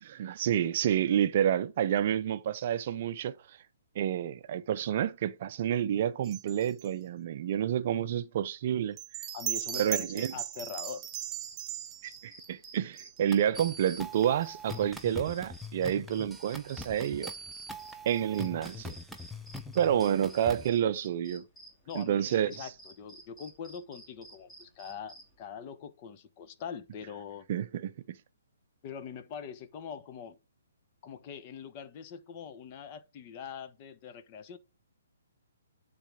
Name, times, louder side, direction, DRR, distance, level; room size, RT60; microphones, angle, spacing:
voice 1, 0.0-3.6 4.0-9.0 9.7-10.3 12.0-17.3 18.1-19.0 19.7-21.4 21.9-22.7 27.5-27.9, right 10 dB, 45° right, 0.5 m, -29 dB
sound 1, 6.2-6.9 9.0-13.5, right 10 dB, 25° right, 1.3 m, -38 dB
voice 2, 9.3-11.1 21.9-27.5 28.8-30.3 31.0-34.6, left 7 dB, 35° left, 1.1 m, -43 dB
sound 2, 11.1-25.4, right 1 dB, 15° left, 2.4 m, -54 dB
sound 3, 13.3-20.7, left 1 dB, ahead, 0.8 m, -43 dB
10.0 x 4.2 x 3.6 m
figure-of-eight pair, 130°, 0 cm